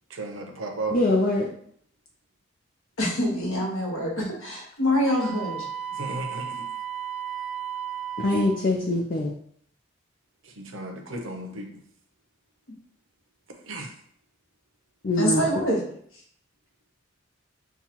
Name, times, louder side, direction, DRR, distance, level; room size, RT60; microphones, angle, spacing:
voice 1, 0.1-1.0 5.9-6.7 10.4-11.8 13.7-13.9, right 2 dB, 80° right, 3 dB, 0.8 m, -34 dB
voice 2, 0.9-1.5 8.2-9.3 15.0-15.4, left 1 dB, 45° left, -1 dB, 0.6 m, -23 dB
voice 3, 3.0-5.7 15.2-15.8, left 1 dB, 90° left, -2 dB, 1.2 m, -25 dB
Wind instrument woodwind instrument, 5.0-8.6, right 9 dB, 5° right, 0.3 m, -34 dB
7.1 x 2.4 x 2.9 m, 0.63 s
head